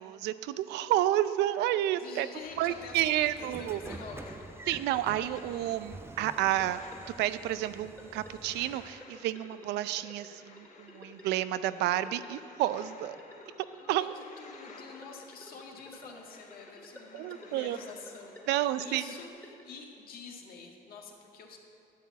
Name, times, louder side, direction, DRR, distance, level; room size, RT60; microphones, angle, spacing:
voice 1, 0.0-2.3 2.6-3.8 4.7-6.8 7.2-13.2 13.9-14.1 17.1-17.8 18.5-19.0, right 13 dB, 85° right, 14 dB, 0.5 m, -30 dB
sound 1, 1.4-19.3, left 4 dB, 45° left, 1.3 m, -56 dB
voice 2, 1.9-4.5 13.8-21.6, left 4 dB, 60° left, 1 dB, 1.9 m, -47 dB
Train / Sliding door, 2.4-9.0, right 3 dB, 15° right, 0.5 m, -48 dB
sound 2, 3.4-19.8, left 2 dB, 10° left, 1.8 m, -53 dB
11.5 x 8.4 x 7.1 m, 2.7 s
cardioid pair, 110°, 17 cm